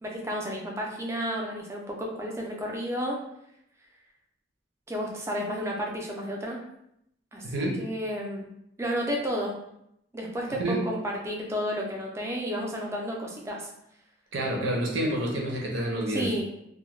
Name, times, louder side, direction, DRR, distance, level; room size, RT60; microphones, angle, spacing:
voice 1, 0.0-3.2 4.9-6.6 7.3-7.4 7.8-8.5 8.8-9.6 10.1-13.7 16.1-16.5, equal, 15° right, -1 dB, 0.4 m, -31 dB
voice 2, 7.4-7.8 10.6-10.8 14.3-16.4, right 1 dB, 75° right, -1 dB, 0.6 m, -28 dB
2.3 x 2.1 x 3.1 m, 0.78 s
head